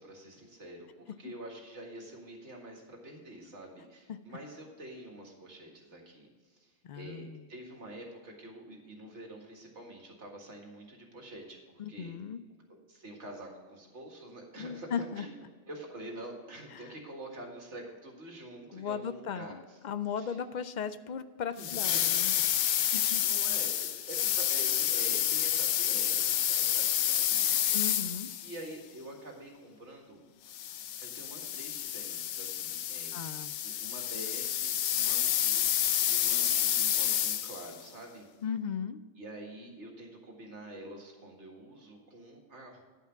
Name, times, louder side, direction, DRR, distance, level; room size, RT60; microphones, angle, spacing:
voice 1, 0.0-11.6 11.9-12.2 12.7-15.3 15.7-19.8 20.2-20.4 21.6-27.8 28.4-30.2 31.0-38.3 39.2-42.8, right 1 dB, 80° right, 1 dB, 2.1 m, -47 dB
voice 2, 6.8-7.4 11.8-12.4 14.6-15.2 18.7-22.3 22.9-23.2 27.7-28.3 33.1-33.5 38.4-39.0, left 7 dB, 60° left, 13 dB, 0.5 m, -37 dB
sound 1, 21.6-28.6 30.5-37.8, left 10 dB, 90° left, 0.9 m, -29 dB
10.5 x 5.8 x 5.8 m, 1.5 s
omnidirectional pair, 1.2 m